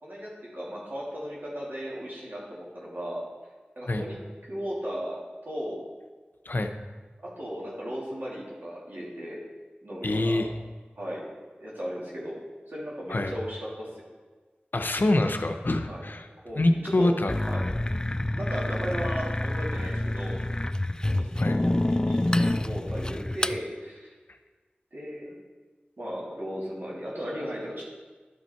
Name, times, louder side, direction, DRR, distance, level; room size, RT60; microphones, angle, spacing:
voice 1, 0.0-3.2 3.8-5.2 5.4-5.8 7.2-9.4 9.8-10.4 11.0-11.3 11.6-12.4 12.7-14.0 15.8-16.0 16.4-17.1 17.5-17.7 18.4-20.4 21.1-21.3 21.6-24.1 24.9-25.3 26.0-27.8, equal, 70° right, -6 dB, 2.8 m, -36 dB
voice 2, 10.0-10.5 13.1-13.3 14.7-16.2 16.6-17.3 21.4-21.6, left 2 dB, 60° left, 6 dB, 0.7 m, -25 dB
sound 1, 17.3-23.6, left 1 dB, 20° left, 0.3 m, -27 dB
11.5 x 5.6 x 4.5 m, 1.4 s
wide cardioid pair, 45°, 4 cm